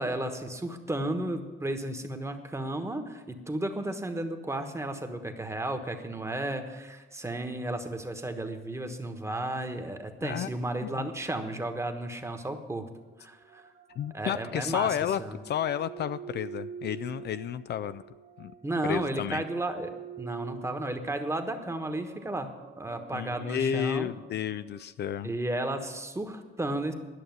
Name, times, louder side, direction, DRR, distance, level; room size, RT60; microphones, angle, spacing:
voice 1, 0.0-12.9 13.2-13.6 14.1-15.4 18.6-19.9 20.2-24.1 25.2-26.9, right 1 dB, 15° right, 6 dB, 1.2 m, -33 dB
sound 1, 13.0-24.8, right 6 dB, 45° right, 1.4 m, -47 dB
voice 2, 14.0-18.0 18.4-18.5 18.8-19.4 23.1-25.3, left 9 dB, 55° left, 14 dB, 0.4 m, -32 dB
11.0 x 6.5 x 9.3 m, 1.3 s
cardioid pair, 90°, 20 cm